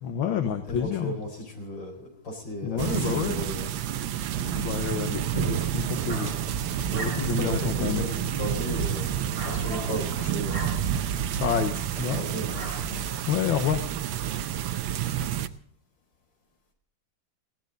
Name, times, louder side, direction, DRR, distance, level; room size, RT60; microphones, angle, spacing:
voice 1, 0.0-1.2 2.6-3.4 4.4-6.5 7.0-8.1 11.4-12.2 12.9-13.8, left 8 dB, 85° left, 7 dB, 1.9 m, -29 dB
voice 2, 0.6-3.7 4.3-4.5 6.0-6.3 6.8-10.6 12.1-12.6, left 1 dB, 70° left, 3 dB, 5.0 m, -35 dB
sound 1, 2.8-15.5, right 10 dB, 85° right, 1.6 m, -29 dB
sound 2, 5.5-13.4, right 4 dB, 55° right, 2.8 m, -40 dB
sound 3, 6.1-11.6 12.0-12.2 12.5-13.0, right 1 dB, 35° right, 7.8 m, -42 dB
20.0 x 17.0 x 4.0 m, 0.64 s
omnidirectional pair, 2.1 m